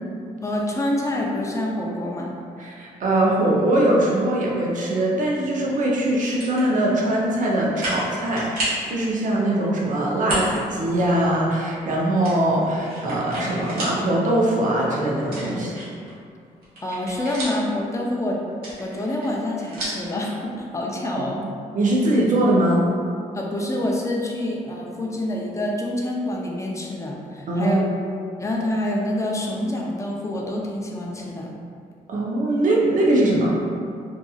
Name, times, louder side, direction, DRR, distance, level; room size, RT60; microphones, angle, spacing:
voice 1, 0.4-2.3 16.8-18.4 18.8-21.4 23.3-27.8 28.4-31.5, left 1 dB, 20° left, -2 dB, 0.5 m, -27 dB
voice 2, 2.6-15.8 21.1-21.2 21.7-22.9 27.5-27.8 32.1-33.6, right 1 dB, 55° right, -3 dB, 0.6 m, -21 dB
sound 1, 6.2-6.6 7.2-7.3 7.7-8.1 8.4-8.8 10.2-10.6 11.0-11.1 12.2-14.0 14.4-14.5 15.2-16.1 16.5-17.7 18.5-20.1, right 1 dB, 80° right, 1.0 m, -31 dB
2.7 x 2.5 x 2.3 m, 2.3 s
cardioid pair, 65°, 15 cm